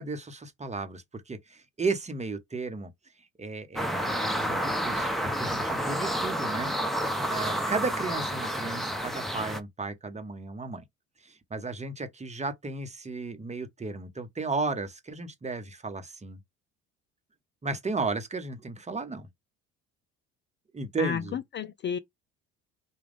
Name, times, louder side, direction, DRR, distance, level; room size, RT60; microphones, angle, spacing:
voice 1, 0.0-2.9 3.4-6.8 7.3-10.8 11.2-16.4 17.6-19.3 20.7-21.4, right 3 dB, 20° right, 1.0 m, -34 dB
sound 1, 3.8-9.6, equal, ahead, 0.8 m, -30 dB
voice 2, 21.0-22.0, left 8 dB, 35° left, 0.4 m, -32 dB
4.8 x 2.3 x 3.5 m
hypercardioid pair, 70°, 35 cm